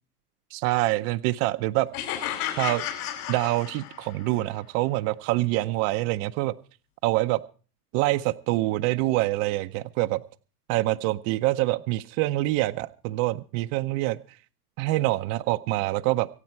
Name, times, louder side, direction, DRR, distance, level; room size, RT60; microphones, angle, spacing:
voice 1, 0.5-1.9 2.6-2.8 3.3-6.5 7.0-7.4 7.9-10.2 10.7-14.2 14.8-16.3, right 18 dB, 35° right, 9 dB, 0.6 m, -25 dB
sound 1, 1.9-4.3, left 11 dB, 70° left, 5.6 m, -32 dB
25.0 x 8.4 x 4.3 m, 0.38 s
supercardioid pair, 140°, 47 cm